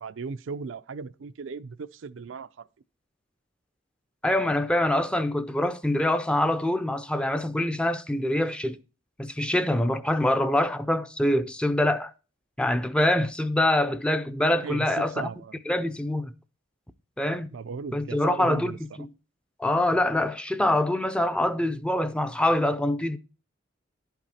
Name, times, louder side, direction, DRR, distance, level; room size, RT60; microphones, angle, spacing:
voice 1, 0.0-2.7 14.6-15.6 17.5-19.0, right 5 dB, 75° right, 0.4 m, -36 dB
voice 2, 4.2-8.8 9.2-12.1 12.6-15.3 15.7-16.3 17.2-17.5 17.9-19.1 19.6-23.2, left 1 dB, 5° left, 0.5 m, -25 dB
11.0 x 5.9 x 4.1 m
head